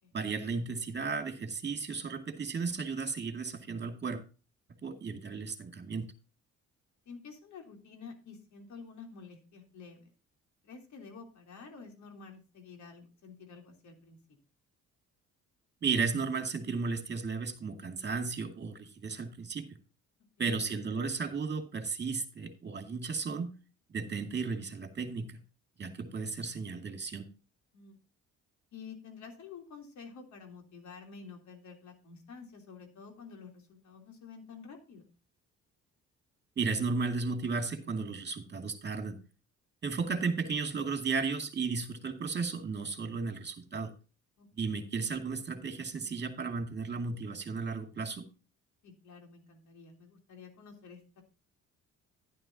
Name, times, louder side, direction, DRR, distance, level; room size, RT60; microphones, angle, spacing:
voice 1, 0.1-4.2 4.8-6.1 15.8-19.7 20.4-23.5 23.9-25.4 25.8-27.3 36.6-39.2 39.8-43.9 44.6-48.3, right 4 dB, 35° right, 6 dB, 2.3 m, -34 dB
voice 2, 7.0-10.0 10.6-14.4 20.4-20.6 27.7-28.0 28.7-35.1 44.4-44.7 48.8-51.2, left 5 dB, 70° left, 4 dB, 3.3 m, -50 dB
11.0 x 11.0 x 2.8 m, 0.33 s
cardioid pair, 90°, 30 cm